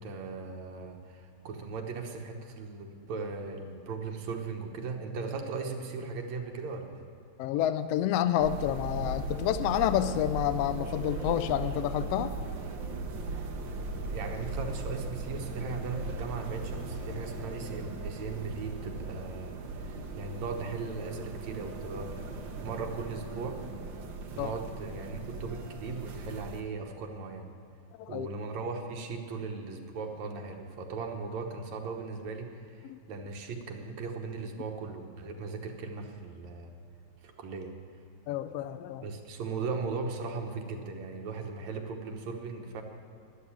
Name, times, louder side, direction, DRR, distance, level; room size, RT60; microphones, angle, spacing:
voice 1, 0.0-7.1 13.9-22.2 22.6-23.6 24.3-27.5 28.1-36.7 37.2-37.7 39.0-42.8, right 4 dB, 70° right, 3 dB, 2.4 m, -38 dB
voice 2, 7.4-12.3 24.4-24.5 28.0-28.3 32.8-33.0 38.3-39.0, left 11 dB, 80° left, 11 dB, 1.5 m, -29 dB
sound 1, 8.4-26.6, right 3 dB, 55° right, 1.4 m, -38 dB
13.0 x 11.0 x 8.8 m, 2.5 s
omnidirectional pair, 3.3 m